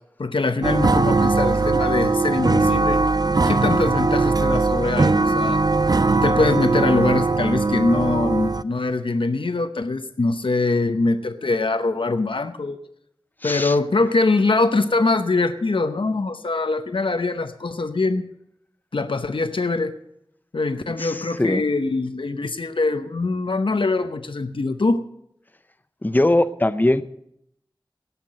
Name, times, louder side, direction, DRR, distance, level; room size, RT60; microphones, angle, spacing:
voice 1, 0.2-3.0 3.5-5.6 6.2-12.8 13.4-18.3 18.9-19.9 20.5-25.0, left 3 dB, 75° left, 9 dB, 0.8 m, -23 dB
sound 1, 0.6-8.6, right 3 dB, 50° right, 0.5 m, -20 dB
voice 2, 13.4-13.7 21.0-21.6 26.0-27.0, left 1 dB, 20° left, 12 dB, 0.6 m, -21 dB
17.5 x 5.9 x 7.6 m, 0.75 s
wide cardioid pair, 50°, 9 cm